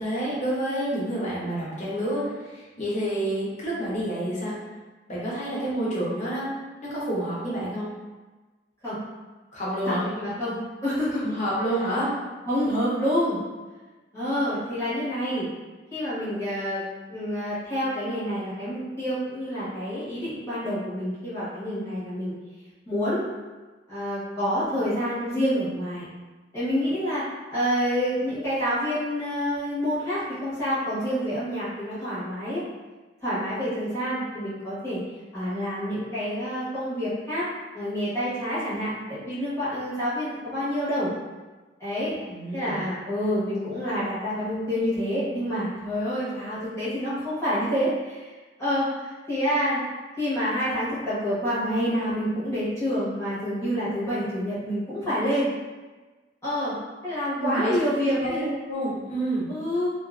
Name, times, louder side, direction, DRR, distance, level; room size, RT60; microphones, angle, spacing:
voice 1, 0.0-4.5 5.1-6.5 6.8-7.9 9.5-10.0 11.2-12.1 42.2-42.8 57.4-57.8 58.1-59.5, right 1 dB, 40° left, -7 dB, 0.8 m, -28 dB
voice 2, 9.8-11.2 12.5-13.4 14.1-15.5 15.9-16.8 17.1-22.4 22.9-23.2 23.9-26.1 26.5-27.2 27.5-32.6 33.2-35.0 35.3-37.5 37.7-41.1 41.8-42.1 42.5-48.3 48.6-49.8 50.2-55.5 56.4-56.8 57.0-58.5 59.5-59.9, equal, 15° left, -13 dB, 1.0 m, -27 dB
2.6 x 2.4 x 2.3 m, 1.3 s
head